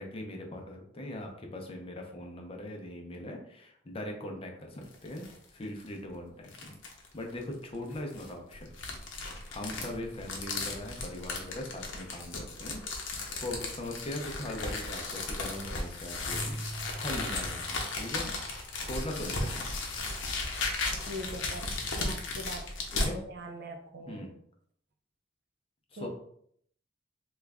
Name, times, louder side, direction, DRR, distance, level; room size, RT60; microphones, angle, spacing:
voice 1, 0.0-5.3 5.5-6.8 7.1-8.7 9.5-13.1 13.4-18.3 18.8-19.8 22.9-23.2 24.1-24.3 25.9-26.1, left 1 dB, 30° left, 2 dB, 0.6 m, -40 dB
sound 1, 4.8-5.4 5.8-5.9 6.5-7.1 7.9-23.1, left 3 dB, 75° left, 0.7 m, -35 dB
Keyboard (musical), 16.2-18.5, right 1 dB, 40° right, 1.0 m, -43 dB
voice 2, 21.0-21.7 22.0-22.7 23.3-24.2 26.0-26.1, equal, 60° right, 5 dB, 0.5 m, -41 dB
3.1 x 2.4 x 3.4 m, 0.67 s
head